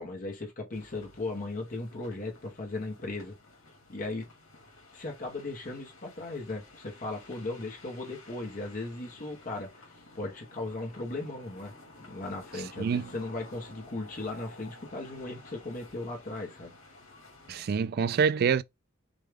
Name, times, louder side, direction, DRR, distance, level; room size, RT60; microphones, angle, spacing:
voice 1, 0.0-3.3 3.9-4.3 4.9-11.7 12.0-16.7, left 2 dB, 40° left, 1.0 m, -37 dB
sound 1, 0.7-17.7, left 2 dB, 80° left, 2.3 m, -53 dB
voice 2, 17.5-18.6, right 6 dB, 50° right, 0.3 m, -26 dB
6.3 x 2.3 x 3.5 m
head